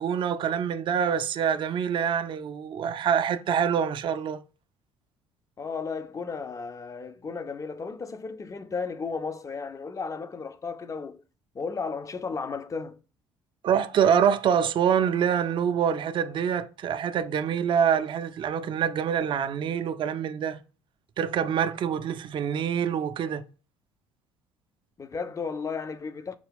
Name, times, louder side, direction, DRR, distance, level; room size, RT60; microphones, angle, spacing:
voice 1, 0.0-4.4 13.6-20.6 21.2-23.4, right 8 dB, 40° right, 0.4 m, -25 dB
voice 2, 5.6-11.2 11.5-13.0 25.0-26.3, left 5 dB, 25° left, 0.5 m, -34 dB
4.8 x 2.3 x 3.3 m
hypercardioid pair, 55°, 13 cm